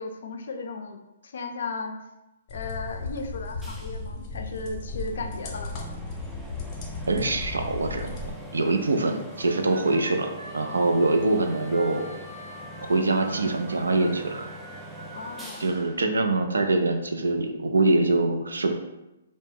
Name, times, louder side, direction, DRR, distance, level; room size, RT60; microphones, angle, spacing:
voice 1, 0.0-2.0 2.5-5.7 15.1-15.7, left 4 dB, 70° left, 5 dB, 0.3 m, -35 dB
sound 1, 2.5-8.3, left 3 dB, 35° left, 0.7 m, -36 dB
sound 2, 3.6-17.1, right 1 dB, 5° right, 0.3 m, -43 dB
voice 2, 7.1-8.2 8.5-12.2 12.8-14.5 15.6-18.7, right 2 dB, 90° right, 5 dB, 0.3 m, -24 dB
Harmonica, 9.3-15.9, right 1 dB, 55° right, 1.0 m, -45 dB
2.2 x 2.0 x 3.2 m, 0.96 s
hypercardioid pair, 135°, 0 cm